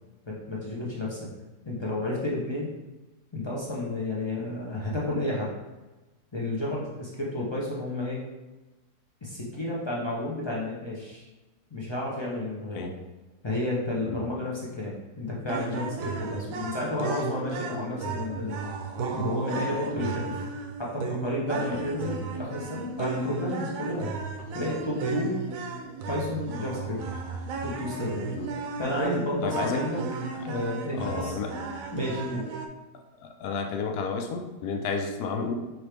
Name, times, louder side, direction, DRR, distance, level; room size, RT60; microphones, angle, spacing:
voice 1, 0.3-1.2 1.6-2.7 3.3-5.5 6.3-8.2 9.2-11.3 11.7-13.0 13.4-18.6 19.1-20.4 20.8-24.1 24.5-25.4 26.1-27.0 27.6-28.3 28.8-30.0 30.5-31.4 31.9-32.5, left 1 dB, 35° left, -5 dB, 0.4 m, -31 dB
sound 1, 15.5-32.7, right 4 dB, 70° right, 0.9 m, -34 dB
voice 2, 29.4-29.8 30.3-30.4 30.9-31.5 33.2-35.5, left 5 dB, 75° left, 4 dB, 1.1 m, -32 dB
4.9 x 3.0 x 3.3 m, 1.1 s
omnidirectional pair, 1.7 m